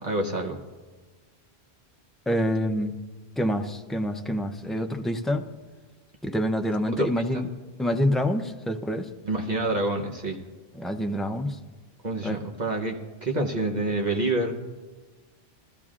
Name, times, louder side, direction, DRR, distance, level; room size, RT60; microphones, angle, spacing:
voice 1, 0.0-0.6 6.9-7.1 7.3-7.4 9.2-10.4 12.0-14.6, right 2 dB, 45° right, 1 dB, 1.0 m, -27 dB
voice 2, 2.3-2.9 3.4-5.4 6.2-7.5 7.8-9.1 10.8-11.6 12.2-12.4, equal, ahead, 4 dB, 0.4 m, -26 dB
21.0 x 14.0 x 2.5 m, 1.3 s
omnidirectional pair, 1.1 m